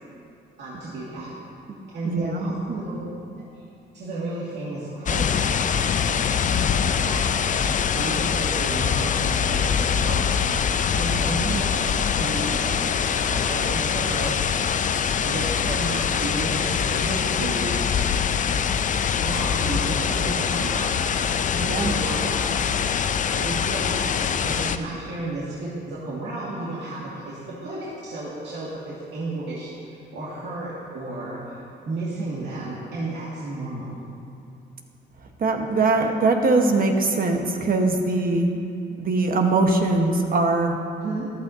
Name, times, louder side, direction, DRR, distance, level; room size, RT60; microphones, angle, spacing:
voice 1, 0.6-1.3 1.9-3.0 3.9-6.0 6.8-7.3 7.9-10.2 10.9-14.4 15.2-17.7 19.2-20.9 21.6-22.6 23.3-29.7 30.1-31.4 31.9-33.9 41.0-41.3, right 2 dB, 60° right, -8 dB, 2.1 m, -32 dB
voice 2, 2.0-2.5 21.5-21.9 35.4-38.6 39.0-40.8, right 3 dB, 45° right, 3 dB, 1.3 m, -21 dB
sound 1, 5.1-24.8, left 7 dB, 40° left, 0.5 m, -24 dB
14.0 x 12.0 x 2.8 m, 2.6 s
cardioid pair, 90°, 20 cm